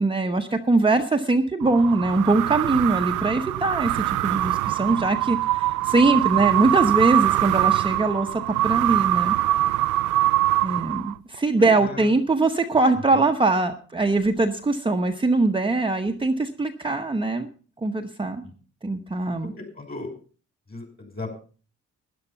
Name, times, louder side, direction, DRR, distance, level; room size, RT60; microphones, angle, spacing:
voice 1, 0.0-9.4 10.6-17.5 17.8-18.4 18.8-19.5, right 3 dB, 15° right, 4 dB, 1.0 m, -22 dB
sound 1, 1.6-11.3, right 16 dB, 90° right, 0.5 m, -23 dB
voice 2, 10.2-10.7 11.6-12.1 13.1-13.2 18.4-18.5 19.6-20.1 20.7-21.3, left 2 dB, 30° left, 5 dB, 5.8 m, -37 dB
12.5 x 10.5 x 5.7 m, 0.40 s
cardioid pair, 90°, 30 cm